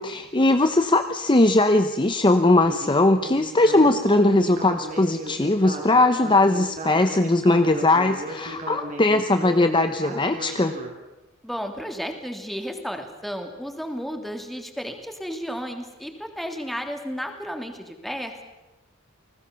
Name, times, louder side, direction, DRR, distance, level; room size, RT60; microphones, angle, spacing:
voice 1, 0.0-10.7, left 2 dB, 25° left, 8 dB, 0.9 m, -20 dB
Speech synthesizer, 2.6-10.9, right 1 dB, 40° right, 4.6 m, -36 dB
voice 2, 11.4-18.4, equal, ahead, 4 dB, 3.0 m, -33 dB
29.5 x 20.0 x 7.0 m, 1.0 s
head